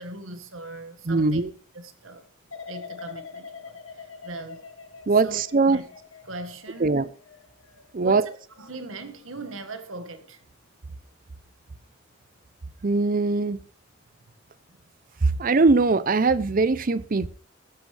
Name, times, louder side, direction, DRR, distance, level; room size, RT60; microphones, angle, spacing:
voice 1, 0.0-1.5 1.7-2.3 2.7-4.6 5.2-5.4 5.7-5.8 6.2-7.1 8.0-10.4, right 2 dB, 85° right, 1.8 m, -39 dB
voice 2, 1.1-1.5 5.1-5.8 6.8-7.1 7.9-8.2 12.8-13.6 15.2-17.3, right 3 dB, 45° right, 0.6 m, -21 dB
sound 1, 2.5-9.4 9.9-10.3, left 5 dB, 80° left, 1.7 m, -45 dB
16.0 x 12.5 x 3.4 m
head